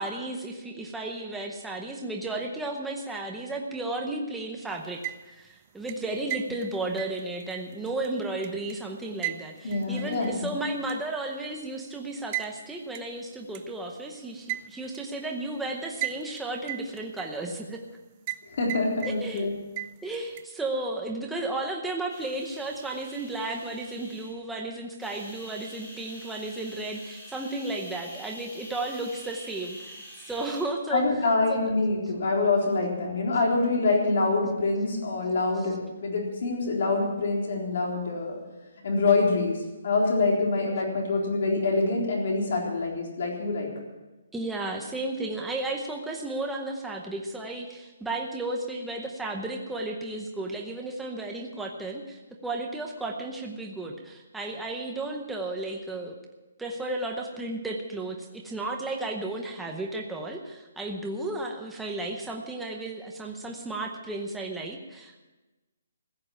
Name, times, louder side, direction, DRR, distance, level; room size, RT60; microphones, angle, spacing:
voice 1, 0.0-17.8 19.2-19.5 20.0-30.0 30.3-31.0 31.5-31.6 35.6-35.7 44.3-56.2 56.6-65.2, right 2 dB, 5° right, 0 dB, 0.8 m, -34 dB
sound 1, 4.8-5.5 5.9-8.7 9.2-10.5 10.9-11.0 12.3-12.5 12.9-13.0 13.5-13.6 14.5-15.0 16.0-16.4 16.7-17.6 18.3-18.4 18.7-19.4 19.8-20.4, right 17 dB, 20° right, 0.4 m, -35 dB
voice 2, 9.6-10.5 18.5-19.5 30.9-35.8 36.0-38.4 38.8-39.6 39.8-43.7, left 3 dB, 50° left, -1 dB, 3.9 m, -25 dB
sound 2, 22.1-24.4 25.0-30.6, equal, 15° left, 4.5 m, -46 dB
15.5 x 7.8 x 8.9 m, 1.1 s
hypercardioid pair, 175°, 0 cm